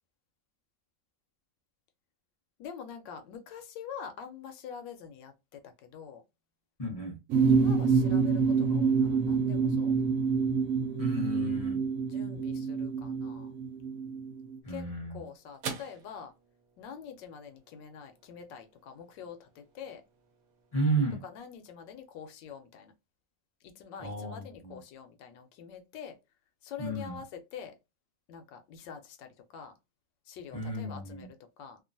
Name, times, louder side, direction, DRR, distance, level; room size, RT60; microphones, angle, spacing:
voice 1, 2.6-6.2 7.4-9.9 12.1-13.5 14.7-14.8 15.1-16.3 16.8-20.0 21.2-22.9 23.7-26.2 26.6-27.7 28.3-29.7 30.3-31.8, left 7 dB, 75° left, 1.2 m, -45 dB
voice 2, 6.8-7.2 11.0-11.8 14.6-15.2 20.7-21.2 24.0-24.8 26.8-27.2 30.5-31.3, right 2 dB, 40° left, 0.5 m, -33 dB
sound 1, 7.3-14.5, right 5 dB, 85° right, 0.7 m, -27 dB
sound 2, 14.3-22.9, right 6 dB, 65° right, 1.0 m, -49 dB
2.9 x 2.4 x 2.6 m
omnidirectional pair, 2.0 m